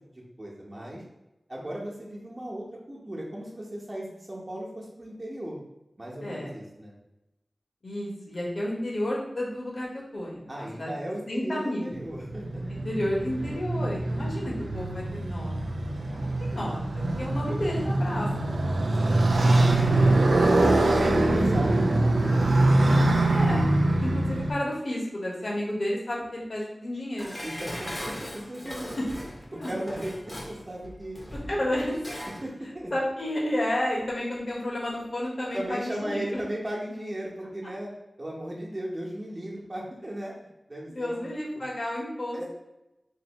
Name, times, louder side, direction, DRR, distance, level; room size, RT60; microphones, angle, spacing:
voice 1, 0.1-1.0 1.5-5.6 6.0-6.9 10.5-12.6 19.0-19.4 20.3-22.8 27.4-29.1 29.5-31.2 32.4-32.9 35.5-37.9 38.2-40.4 40.7-41.2 42.3-42.5, right 1 dB, 40° right, -4 dB, 1.0 m, -37 dB
voice 2, 6.2-6.5 7.8-10.9 11.3-11.9 12.7-18.7 19.0-19.1 19.4-20.1 23.3-23.7 24.0-27.4 27.9-28.0 29.6-29.7 31.5-32.3 32.9-36.4 40.9-42.5, left 1 dB, 65° left, -4 dB, 1.1 m, -32 dB
Motorcycle, 12.0-24.5, right 2 dB, 90° right, 0.3 m, -23 dB
Dishes pots and pans, 27.2-32.5 32.8-32.9, equal, 25° left, 0.7 m, -39 dB
2.7 x 2.6 x 4.0 m, 0.94 s
wide cardioid pair, 45°, 0 cm